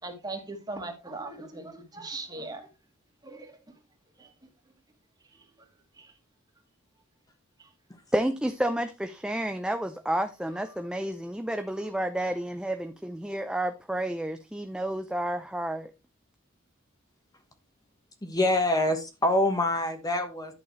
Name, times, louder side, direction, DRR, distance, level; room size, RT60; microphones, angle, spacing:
voice 1, 0.0-2.7 3.2-3.6 4.2-4.3 6.0-6.1, right 2 dB, 20° right, 2.2 m, -39 dB
voice 2, 8.1-15.9, right 1 dB, 5° right, 0.5 m, -30 dB
voice 3, 18.2-20.5, left 1 dB, 20° left, 1.2 m, -25 dB
11.0 x 6.8 x 3.2 m
head